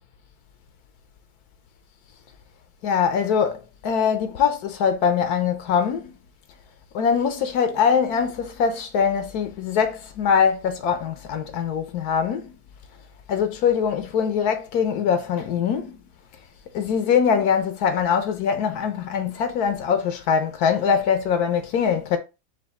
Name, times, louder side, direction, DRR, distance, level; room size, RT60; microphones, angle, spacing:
voice 1, 2.8-6.1 6.9-12.5 13.3-16.0 16.7-22.2, left 7 dB, 75° left, 1.2 m, -22 dB
5.2 x 2.4 x 3.5 m
omnidirectional pair, 1.7 m